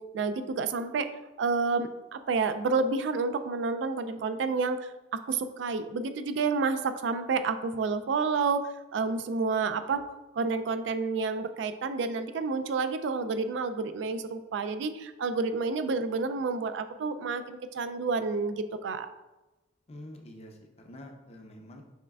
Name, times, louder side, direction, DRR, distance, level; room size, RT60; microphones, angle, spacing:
voice 1, 0.1-1.1 1.4-4.9 5.3-10.0 10.3-19.1, right 4 dB, 75° right, 10 dB, 0.3 m, -29 dB
voice 2, 19.9-21.8, left 1 dB, 35° left, 3 dB, 0.5 m, -47 dB
6.3 x 3.2 x 2.3 m, 1.1 s
head